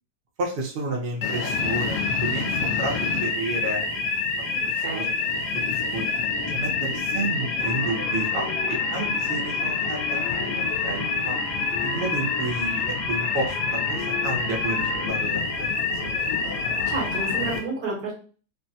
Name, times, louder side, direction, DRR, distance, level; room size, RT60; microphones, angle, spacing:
voice 1, 0.4-3.8 4.8-5.0 5.3-5.4 5.7-6.0 6.5-11.4 11.8-15.7 16.0-16.2, right 2 dB, 50° right, -2 dB, 0.7 m, -31 dB
sound 1, 1.2-17.6, left 4 dB, 90° left, 1.2 m, -27 dB
voice 2, 4.5-5.1 16.8-18.1, right 3 dB, 65° right, -3 dB, 1.6 m, -31 dB
sound 2, 7.6-15.1, left 2 dB, 50° left, 0.9 m, -37 dB
3.5 x 2.1 x 2.7 m, 0.39 s
omnidirectional pair, 1.7 m